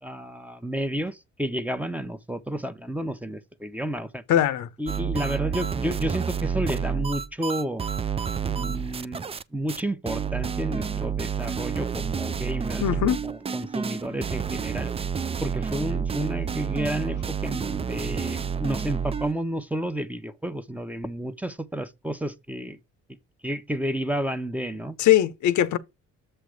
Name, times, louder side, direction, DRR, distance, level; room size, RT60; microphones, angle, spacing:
voice 1, 0.0-4.2 4.8-7.8 8.4-9.2 9.5-14.9 15.4-22.8 23.4-25.0, right 1 dB, 5° right, 0.8 m, -31 dB
voice 2, 4.3-4.7 12.8-13.2 25.0-25.8, left 12 dB, 75° left, 0.7 m, -21 dB
sound 1, 4.9-9.4 9.7-9.8 10.1-19.3, right 6 dB, 20° right, 0.4 m, -29 dB
7.5 x 3.3 x 6.3 m
cardioid pair, 90°, 30 cm